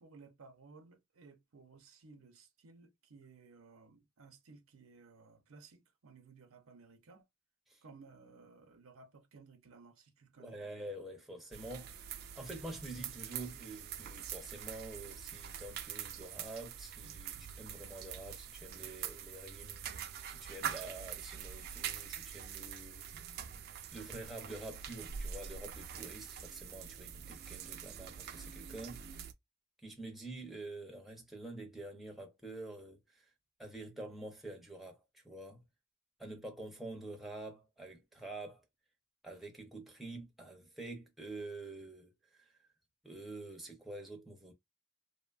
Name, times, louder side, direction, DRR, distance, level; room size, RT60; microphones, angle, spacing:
voice 1, 0.0-7.2 7.8-10.6, right 4 dB, 90° right, 0.6 m, -58 dB
voice 2, 10.4-12.0 12.4-19.9 20.3-23.1 23.9-29.0 29.8-33.3 33.6-35.6 36.2-38.7 39.2-42.5 43.0-44.5, right 2 dB, ahead, 0.5 m, -47 dB
sound 1, 11.5-29.3, right 8 dB, 50° right, 0.3 m, -45 dB
2.8 x 2.1 x 2.3 m
head